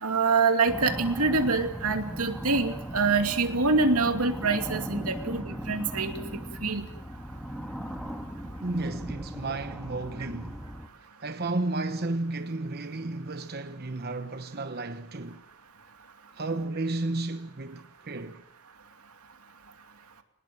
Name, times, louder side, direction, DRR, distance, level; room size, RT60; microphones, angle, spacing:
voice 1, 0.0-6.1 6.6-6.8, right 4 dB, 85° right, 2.6 m, -25 dB
sound 1, 0.7-10.9, equal, ahead, 1.6 m, -38 dB
voice 2, 8.6-10.6 11.2-15.4 16.3-18.4, right 2 dB, 45° right, 1.0 m, -33 dB
24.5 x 20.0 x 7.7 m
head